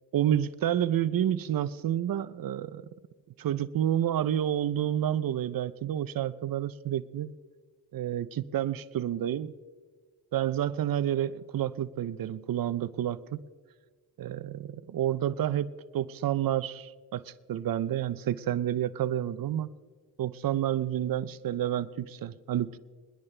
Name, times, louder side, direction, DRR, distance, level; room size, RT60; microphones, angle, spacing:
voice 1, 0.1-2.8 3.4-7.3 7.9-9.5 10.3-13.4 14.2-19.8 20.2-22.8, right 11 dB, 60° right, 16 dB, 0.7 m, -29 dB
22.5 x 10.5 x 3.3 m, 1.4 s
cardioid pair, 70°, 39 cm